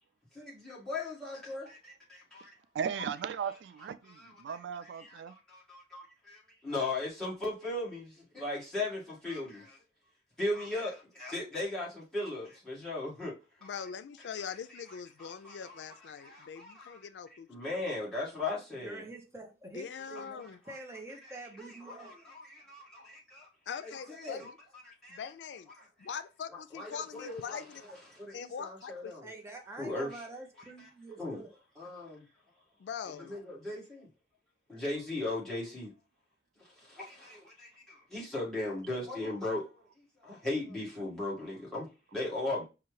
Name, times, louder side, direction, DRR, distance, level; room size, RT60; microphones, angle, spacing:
voice 1, 0.3-2.5 4.0-9.8 10.4-13.3 13.6-13.7 14.5-17.0 17.5-19.0 20.1-20.8 21.2-23.5 23.8-24.5 24.8-25.2 25.8-25.9 26.7-27.6 28.1-29.3 29.8-30.2 30.8-30.9 31.2-31.4 31.8-32.2 33.3-34.1 34.7-35.9 36.6-39.8 40.2-42.6, left 2 dB, 5° left, 1.6 m, -38 dB
voice 2, 2.7-5.3, right 7 dB, 85° right, 0.3 m, -37 dB
voice 3, 13.6-17.8 19.7-20.6 23.7-24.6 25.1-25.7 26.0-27.8 28.3-29.2 32.8-33.4, left 7 dB, 90° left, 0.4 m, -42 dB
voice 4, 18.7-22.3 29.2-31.5, right 2 dB, 15° right, 0.8 m, -47 dB
5.6 x 2.4 x 3.1 m
head